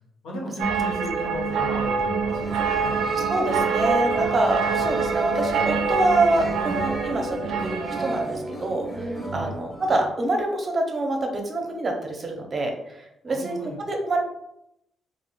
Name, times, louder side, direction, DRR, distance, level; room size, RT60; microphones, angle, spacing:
voice 1, 0.2-3.0 9.3-9.6 13.3-13.8, equal, 90° left, -3 dB, 1.0 m, -35 dB
sound 1, 0.6-8.2, right 5 dB, 90° right, 0.4 m, -26 dB
sound 2, 2.3-10.1, right 2 dB, ahead, 0.8 m, -32 dB
voice 2, 3.1-14.2, right 2 dB, 35° right, 2 dB, 0.6 m, -26 dB
3.6 x 2.4 x 2.3 m, 0.82 s
cardioid pair, 90°, 0 cm